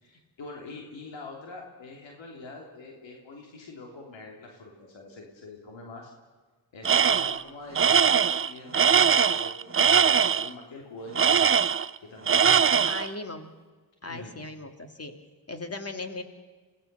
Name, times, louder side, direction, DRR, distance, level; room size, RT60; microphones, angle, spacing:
voice 1, 0.0-6.1 6.7-11.4 12.0-12.9 14.1-14.4, left 2 dB, 80° left, 0 dB, 3.3 m, -44 dB
Tools, 6.9-7.4 7.8-10.5 11.2-12.0 12.3-13.1, right 7 dB, 30° right, 0.5 m, -21 dB
voice 2, 12.8-13.5 14.0-15.1 15.5-16.2, left 2 dB, 35° left, 6 dB, 2.8 m, -37 dB
25.5 x 17.5 x 6.9 m, 1.4 s
cardioid pair, 70°, 44 cm